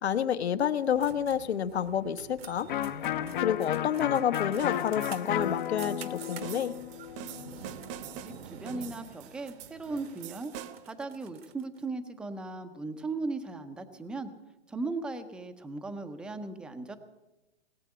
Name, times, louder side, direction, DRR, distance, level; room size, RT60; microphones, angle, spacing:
voice 1, 0.0-2.7 3.4-6.7, left 9 dB, 70° left, 11 dB, 1.0 m, -29 dB
sound 1, 0.9-11.8, right 8 dB, 60° right, 1.1 m, -49 dB
Electric guitar, 2.7-8.3, left 11 dB, 45° left, 0.7 m, -33 dB
sound 2, 4.6-11.0, right 10 dB, 30° right, 0.8 m, -46 dB
voice 2, 8.2-10.5 10.8-14.3 14.7-17.0, right 3 dB, 5° right, 8 dB, 0.5 m, -37 dB
19.0 x 7.6 x 9.5 m, 1.0 s
hypercardioid pair, 140°, 34 cm